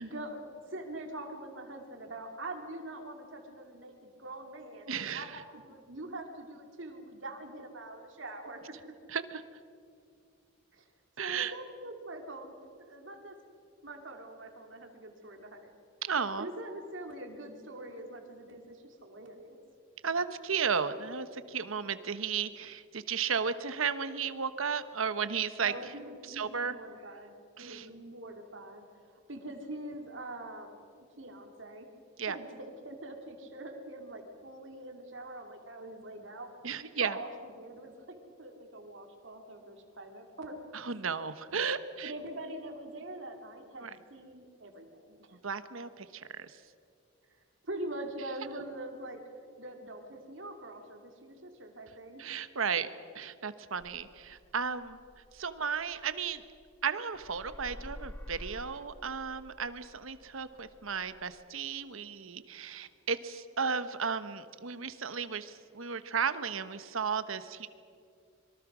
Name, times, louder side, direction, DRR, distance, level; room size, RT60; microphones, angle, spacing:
voice 1, 0.0-8.6 10.7-10.9 11.2-12.5 12.8-13.4 13.8-15.7 16.4-19.6 25.6-30.8 31.2-31.9 32.2-36.5 37.0-40.6 42.0-45.4 47.3-49.2 49.6-52.3, right 1 dB, 65° right, 3 dB, 2.8 m, -44 dB
voice 2, 4.9-5.4 9.1-9.4 11.2-11.5 16.0-16.5 20.0-25.7 26.3-26.7 27.6-27.9 32.2-32.4 36.6-37.2 40.7-42.1 43.8-43.9 45.3-46.6 52.2-52.9 53.1-55.0 55.3-56.4 56.8-67.7, right 6 dB, 80° right, 12 dB, 1.1 m, -34 dB
sound 1, 53.8-56.8 57.1-61.4, equal, 10° left, 0.8 m, -49 dB
25.0 x 23.0 x 6.2 m, 2.4 s
head